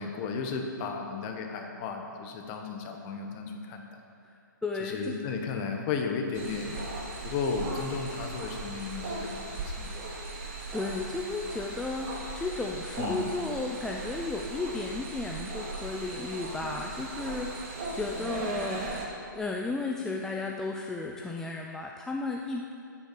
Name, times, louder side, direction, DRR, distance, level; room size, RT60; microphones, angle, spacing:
voice 1, 0.0-4.0 4.8-6.8 7.2-9.9 13.0-13.3, left 5 dB, 30° left, 3 dB, 1.4 m, -34 dB
voice 2, 4.2-5.1 10.3-18.9 19.3-22.7, left 3 dB, 5° left, 0 dB, 0.4 m, -34 dB
sound 1, 6.3-19.1, right 2 dB, 40° right, 2.3 m, -38 dB
10.0 x 8.6 x 6.9 m, 2.5 s
hypercardioid pair, 140°, 11 cm